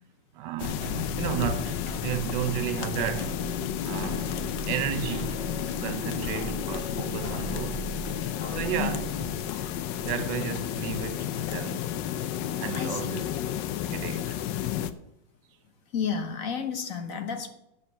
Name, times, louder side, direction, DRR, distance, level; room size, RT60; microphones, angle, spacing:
voice 1, 0.3-0.8 1.2-4.4 4.7-7.9 8.5-9.1 10.0-11.9 12.6-13.3 13.9-14.4, right 12 dB, 80° right, 1.3 m, -33 dB
sound 1, 0.6-14.9, left 11 dB, 85° left, 1.3 m, -32 dB
sound 2, 0.7-10.2, right 3 dB, 15° left, 1.8 m, -40 dB
sound 3, 4.0-9.9, left 1 dB, 25° right, 1.4 m, -46 dB
voice 2, 12.5-13.3 15.9-17.5, left 6 dB, 55° left, 1.4 m, -32 dB
8.4 x 8.4 x 7.0 m
omnidirectional pair, 1.9 m